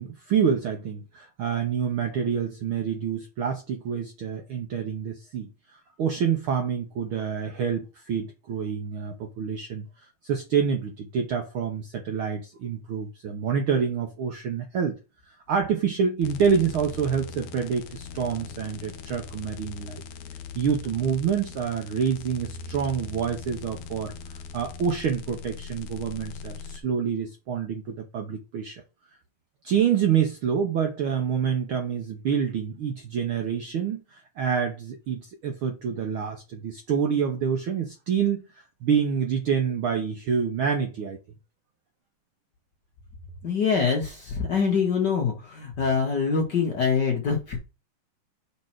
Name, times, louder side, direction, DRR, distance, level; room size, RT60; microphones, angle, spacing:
voice 1, 0.0-15.0 15.2-20.0 20.5-28.8 29.6-41.2, right 7 dB, 70° right, 1.3 m, -27 dB
sound 1, 16.2-26.8, left 4 dB, 75° left, 1.9 m, -40 dB
voice 2, 43.4-47.6, left 5 dB, 50° left, 1.4 m, -24 dB
5.5 x 4.3 x 5.9 m
omnidirectional pair, 3.3 m